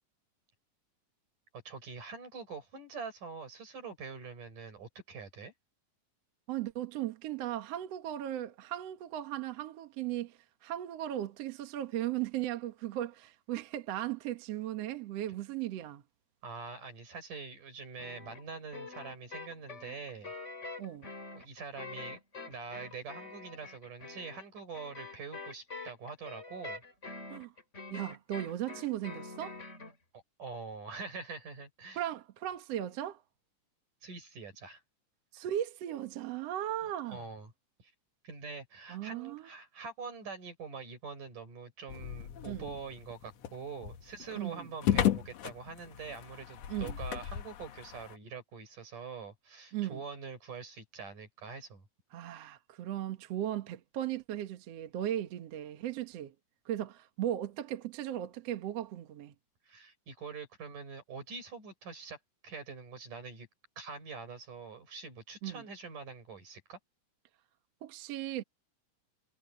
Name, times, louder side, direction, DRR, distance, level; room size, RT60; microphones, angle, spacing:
voice 1, 1.5-5.5 16.4-20.3 21.3-22.2 22.5-26.8 30.1-32.0 34.0-34.8 37.1-37.5 37.8-37.9 38.2-51.8 59.6-63.5 63.8-66.8, right 5 dB, 85° right, 7.7 m, -45 dB
voice 2, 6.5-16.0 20.8-21.1 27.3-27.5 27.9-29.6 32.0-33.2 35.3-37.2 38.9-39.5 42.5-42.7 44.4-44.7 46.7-47.0 49.7-50.0 52.1-56.3 56.7-59.3 65.4-65.6 67.8-68.4, right 12 dB, 60° right, 2.1 m, -37 dB
sound 1, 18.0-29.9, left 3 dB, 20° left, 4.5 m, -45 dB
sound 2, 41.9-48.2, left 11 dB, 65° left, 2.2 m, -35 dB
omnidirectional pair, 3.6 m